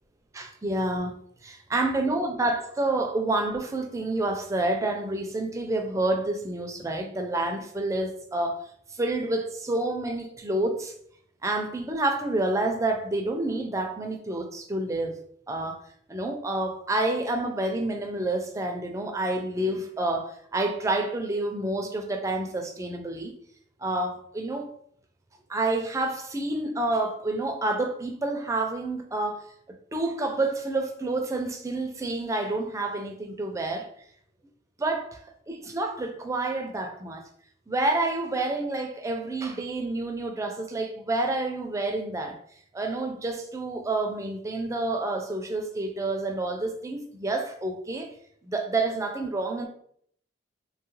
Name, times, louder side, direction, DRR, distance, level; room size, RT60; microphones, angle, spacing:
voice 1, 0.3-1.1 1.4-10.9 11.4-15.2 15.5-15.8 16.1-23.3 23.8-24.7 25.5-29.5 29.9-33.9 34.8-35.2 35.5-37.2 37.7-42.4 42.7-48.1 48.4-49.7, right 2 dB, 15° right, 0.4 m, -28 dB
2.8 x 2.3 x 3.1 m
head